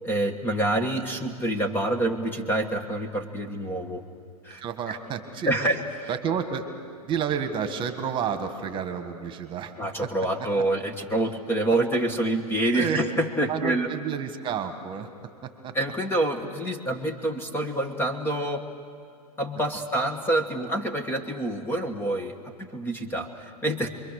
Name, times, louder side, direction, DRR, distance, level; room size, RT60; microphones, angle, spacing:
voice 1, 0.0-4.0 4.4-4.6 4.9-5.0 5.5-5.8 9.8-13.9 15.7-18.6 19.4-22.3 22.6-23.9, right 1 dB, 10° left, 6 dB, 1.5 m, -27 dB
voice 2, 4.6-5.7 6.1-6.7 7.0-9.7 10.0-10.1 12.7-13.0 13.5-15.1 15.4-15.7, right 7 dB, 25° right, 8 dB, 1.7 m, -30 dB
29.0 x 23.0 x 6.7 m, 2.3 s
hypercardioid pair, 130°, 20 cm